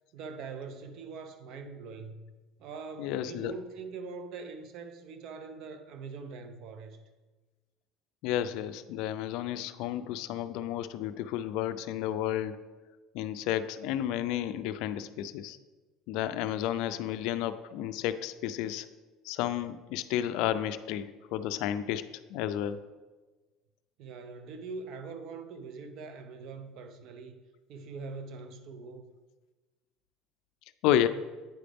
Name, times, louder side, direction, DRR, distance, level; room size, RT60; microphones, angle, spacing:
voice 1, 0.1-2.3 2.6-7.0 24.0-27.4 27.7-29.2, right 4 dB, 60° right, 8 dB, 0.5 m, -43 dB
voice 2, 3.0-3.5 8.2-12.6 13.1-15.6 16.1-18.9 19.2-22.8 30.8-31.1, left 11 dB, 70° left, 12 dB, 0.3 m, -31 dB
9.1 x 5.0 x 3.4 m, 1.3 s
cardioid pair, 125°, 0 cm